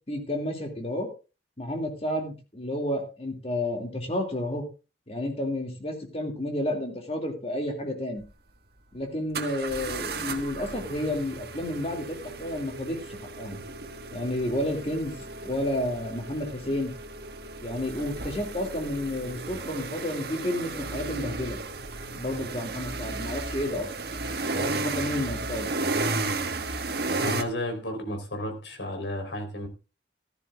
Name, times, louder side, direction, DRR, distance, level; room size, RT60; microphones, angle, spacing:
voice 1, 0.1-1.1 1.6-4.6 5.1-8.2 8.9-13.6 14.1-16.9 17.6-21.6 22.1-23.9 24.5-25.7, left 1 dB, 35° left, 3 dB, 2.5 m, -31 dB
sound 1, 8.2-8.3 9.3-27.4, right 3 dB, 60° right, 1.5 m, -34 dB
voice 2, 27.2-29.7, left 1 dB, 90° left, 5 dB, 4.0 m, -32 dB
15.5 x 13.5 x 2.4 m, 0.31 s
head